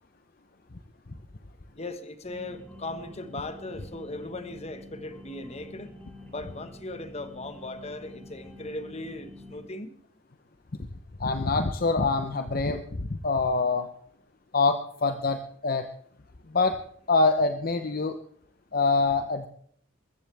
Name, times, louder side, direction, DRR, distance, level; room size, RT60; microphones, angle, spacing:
voice 1, 1.8-5.9 6.3-9.9, left 2 dB, 35° left, 9 dB, 1.5 m, -38 dB
sound 1, 2.2-9.6, left 1 dB, 10° left, 3.3 m, -47 dB
voice 2, 11.2-13.9 14.5-15.9 16.5-16.8 17.1-18.2 18.7-19.5, left 3 dB, 50° left, 8 dB, 0.8 m, -25 dB
22.0 x 14.5 x 3.5 m, 0.63 s
head